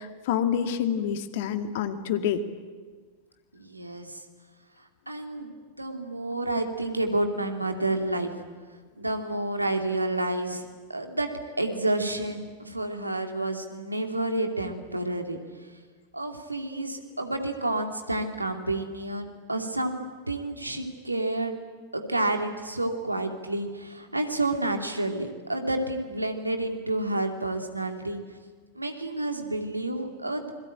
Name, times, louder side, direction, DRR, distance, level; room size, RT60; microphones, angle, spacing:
voice 1, 0.0-2.4, left 8 dB, 50° left, 7 dB, 2.2 m, -27 dB
voice 2, 3.5-4.2 5.1-8.3 9.0-11.3 11.6-15.4 16.1-21.6 21.9-28.2 28.7-30.5, right 2 dB, 85° right, 4 dB, 2.6 m, -30 dB
27.5 x 22.0 x 9.0 m, 1.5 s
figure-of-eight pair, 90°, 0 cm